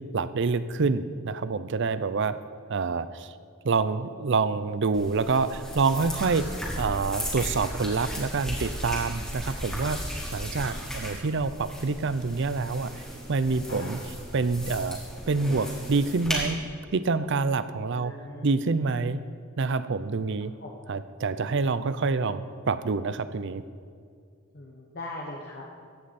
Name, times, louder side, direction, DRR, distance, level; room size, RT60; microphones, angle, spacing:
voice 1, 0.1-2.4 2.7-3.3 3.6-6.5 6.8-10.0 10.3-12.9 13.3-14.0 14.3-15.0 15.3-16.6 16.9-18.1 18.4-19.2 19.6-20.5 20.9-23.6, right 4 dB, 60° right, 14 dB, 0.5 m, -27 dB
sound 1, 4.9-16.4, equal, 5° left, 2.5 m, -36 dB
voice 2, 17.9-18.5 18.8-19.1 20.6-20.7 24.5-25.8, left 2 dB, 50° left, -2 dB, 1.2 m, -41 dB
15.5 x 9.4 x 4.2 m, 2.2 s
head